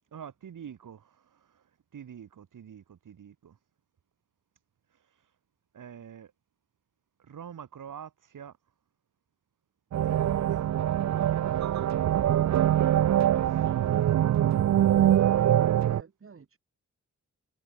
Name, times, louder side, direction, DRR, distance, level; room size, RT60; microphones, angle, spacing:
voice 1, 0.1-1.6 1.9-3.6 5.7-6.3 7.2-8.5 10.0-10.6 12.0-15.2, right 8 dB, 80° right, 4.2 m, -47 dB
sound 1, 9.9-16.0, right 11 dB, 65° right, 0.5 m, -24 dB
voice 2, 14.9-16.6, right 5 dB, 45° right, 6.1 m, -49 dB
wide cardioid pair, 145°, 31 cm